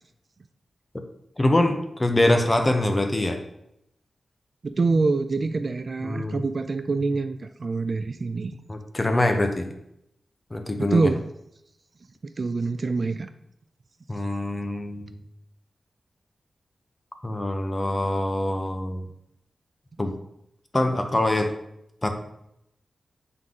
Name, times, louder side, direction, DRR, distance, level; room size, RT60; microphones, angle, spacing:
voice 1, 1.4-3.4 6.0-6.4 8.7-9.7 10.5-11.1 14.1-15.2 17.2-19.0 20.0-20.1 20.7-21.5 22.0-22.1, left 1 dB, 20° left, 6 dB, 0.7 m, -24 dB
voice 2, 4.6-8.5 10.8-11.2 12.4-13.3, right 3 dB, 45° right, 10 dB, 0.3 m, -25 dB
7.4 x 3.9 x 3.7 m, 0.78 s
wide cardioid pair, 125°, 0 cm